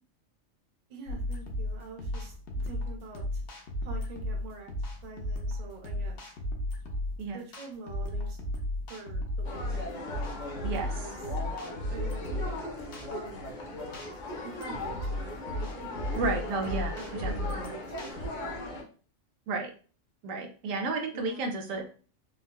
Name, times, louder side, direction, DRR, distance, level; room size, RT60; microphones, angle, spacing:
voice 1, 0.9-3.4 3.8-4.7 5.0-6.3 7.3-8.4 8.9-10.1 10.9-11.4 11.9-12.6 13.1-13.4 14.4-16.1 16.6-18.6 21.1-21.5, right 4 dB, 45° right, 2 dB, 0.6 m, -45 dB
sound 1, 1.1-18.3, left 1 dB, 65° left, 1.0 m, -35 dB
sound 2, 9.4-18.8, left 2 dB, 50° left, 0.6 m, -39 dB
voice 2, 16.2-17.7 19.5-19.7 20.2-21.8, right 3 dB, 80° right, 4 dB, 1.0 m, -32 dB
3.7 x 2.2 x 2.3 m, 0.39 s
omnidirectional pair, 1.4 m